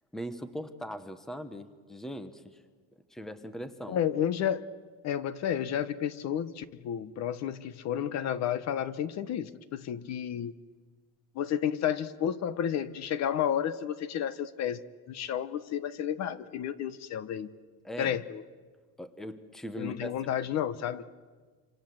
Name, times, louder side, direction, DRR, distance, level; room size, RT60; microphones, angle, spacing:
voice 1, 0.1-2.6 3.1-4.0 17.8-18.2 19.0-20.2, equal, ahead, 11 dB, 1.0 m, -40 dB
voice 2, 3.9-4.6 5.0-10.5 11.3-14.8 15.1-17.5 18.0-18.4 19.7-21.0, left 9 dB, 45° left, 15 dB, 1.1 m, -31 dB
27.5 x 27.0 x 7.8 m, 1.5 s
cardioid pair, 170°, 37 cm